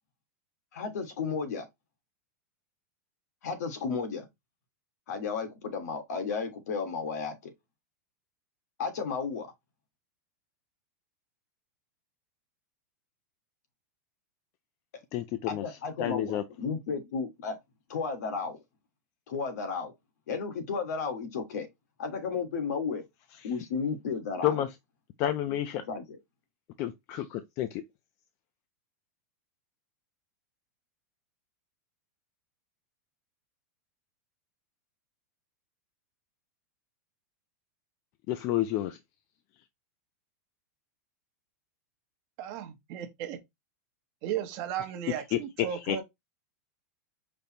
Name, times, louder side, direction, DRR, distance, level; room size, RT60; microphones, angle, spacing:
voice 1, 0.7-1.7 3.4-4.3 5.1-7.5 8.8-9.5 15.5-17.6 17.9-18.6 19.3-19.9 20.3-21.7 22.0-23.0 23.4-24.7 25.9-26.2, left 5 dB, 80° left, 1.6 m, -33 dB
voice 2, 15.1-15.6 16.0-16.4 24.4-24.7 25.2-25.8 26.8-27.8 38.3-39.0 45.3-45.4 45.9-46.0, left 13 dB, 30° left, 0.4 m, -29 dB
voice 3, 42.4-43.4 44.2-46.0, right 10 dB, 35° right, 0.8 m, -35 dB
5.1 x 2.1 x 4.3 m
supercardioid pair, 165°, 9 cm